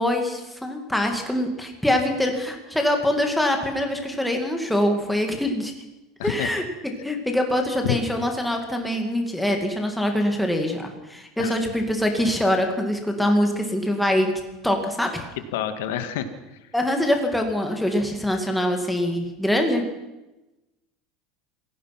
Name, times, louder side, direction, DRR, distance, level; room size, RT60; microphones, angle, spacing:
voice 1, 0.0-5.7 6.2-14.3 14.6-15.2 16.7-19.9, left 1 dB, ahead, 3 dB, 2.2 m, -24 dB
voice 2, 15.5-16.3, left 11 dB, 90° left, 9 dB, 2.0 m, -27 dB
26.5 x 17.0 x 6.0 m, 1.0 s
cardioid pair, 175°, 0 cm